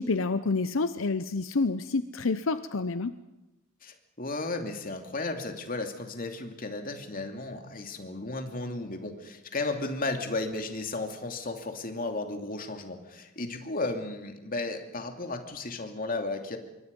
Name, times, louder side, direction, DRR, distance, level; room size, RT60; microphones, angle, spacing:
voice 1, 0.0-3.1, left 3 dB, 85° left, 12 dB, 0.8 m, -28 dB
voice 2, 3.8-16.6, left 2 dB, 45° left, 5 dB, 2.7 m, -34 dB
27.0 x 23.0 x 5.4 m, 1.0 s
head